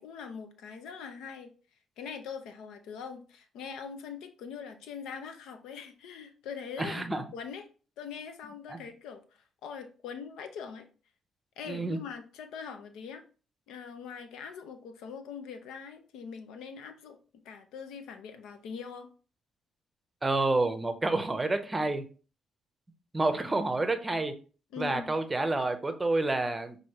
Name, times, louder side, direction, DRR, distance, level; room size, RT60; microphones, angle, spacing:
voice 1, 0.0-1.5 2.0-7.7 8.0-10.9 11.6-13.2 13.7-17.2 17.4-19.1 24.7-25.2, left 6 dB, 90° left, 8 dB, 0.6 m, -42 dB
voice 2, 6.8-7.2 8.7-8.8 11.7-12.0 20.2-22.0 23.1-24.3 24.8-26.8, right 2 dB, 20° right, 8 dB, 0.7 m, -29 dB
6.2 x 2.7 x 3.0 m, 0.37 s
cardioid pair, 90°, 0 cm